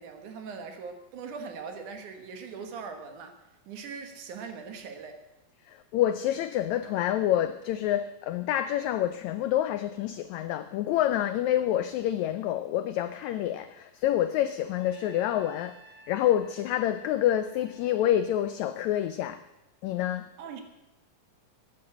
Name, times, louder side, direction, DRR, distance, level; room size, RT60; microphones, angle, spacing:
voice 1, 0.0-3.4 3.7-5.2 20.4-20.6, right 5 dB, 65° right, 2.8 m, -41 dB
voice 2, 5.7-15.8 16.1-19.4 19.8-20.3, left 12 dB, 90° left, 1.6 m, -27 dB
Trumpet, 14.8-19.0, right 2 dB, 50° right, 4.6 m, -56 dB
12.5 x 9.4 x 7.8 m
omnidirectional pair, 3.9 m